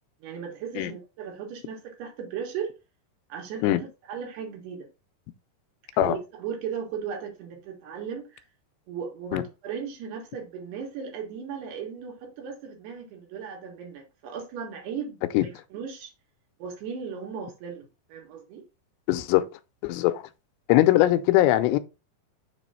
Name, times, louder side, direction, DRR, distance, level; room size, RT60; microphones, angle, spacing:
voice 1, 0.2-2.7 3.3-4.9 6.0-8.5 8.9-15.2 15.7-16.1 16.6-18.6, right 7 dB, 75° right, 3.6 m, -36 dB
voice 2, 19.1-19.4 19.8-20.2 20.7-21.8, left 15 dB, 85° left, 2.7 m, -21 dB
7.0 x 3.0 x 5.5 m
omnidirectional pair, 4.8 m